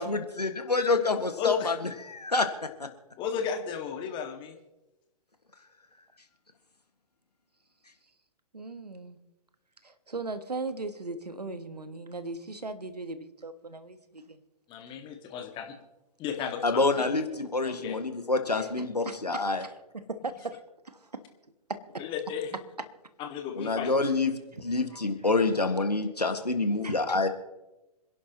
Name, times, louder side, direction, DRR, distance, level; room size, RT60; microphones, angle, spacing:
voice 1, 0.0-2.9 16.6-19.6 23.6-24.3 24.6-27.3, left 3 dB, 85° left, 6 dB, 1.9 m, -27 dB
voice 2, 1.4-1.7 3.2-4.6 14.7-15.8 16.2-16.6 17.0-17.1 17.7-18.0 22.0-22.5 23.2-23.9, left 7 dB, 25° left, 5 dB, 1.9 m, -34 dB
voice 3, 8.5-9.2 9.8-14.4 16.4-16.5 18.5-18.7 19.1-19.4 19.9-20.6 20.8-21.0 21.7-22.0 25.2-25.3 26.8-27.0, right 3 dB, 85° right, 11 dB, 1.5 m, -38 dB
27.0 x 11.0 x 3.0 m, 0.98 s
figure-of-eight pair, 120°, 20 cm